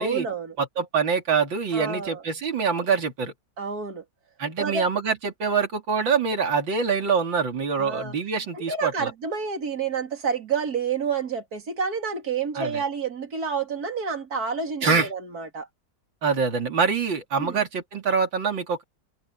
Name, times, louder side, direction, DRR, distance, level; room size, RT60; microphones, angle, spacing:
voice 1, 0.0-0.6 1.7-2.2 3.6-4.0 4.6-4.9 7.7-8.1 8.5-15.7 17.4-17.6, right 5 dB, 50° right, 3.3 m, -29 dB
voice 2, 0.6-3.3 4.4-9.1 12.6-12.8 14.8-15.1 16.2-18.8, right 5 dB, 80° right, 3.6 m, -25 dB
omnidirectional pair, 2.0 m